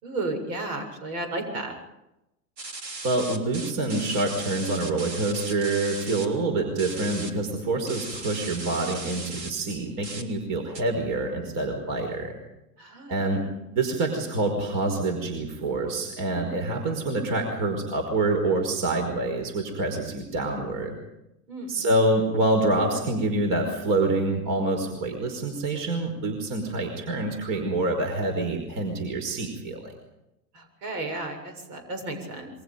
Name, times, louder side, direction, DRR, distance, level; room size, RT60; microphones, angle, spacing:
voice 1, 0.0-1.7 12.8-13.3 21.5-21.7 30.8-32.5, right 2 dB, 65° right, 5 dB, 7.5 m, -33 dB
sound 1, 2.6-6.3 6.8-7.3 7.9-9.5 10.0-10.2 10.7-10.8, right 3 dB, 85° right, 3.3 m, -37 dB
voice 2, 3.0-12.3 13.1-21.0 21.7-29.9, right 2 dB, 40° right, 4 dB, 5.1 m, -26 dB
28.0 x 23.5 x 5.4 m, 0.91 s
hypercardioid pair, 100°, 49 cm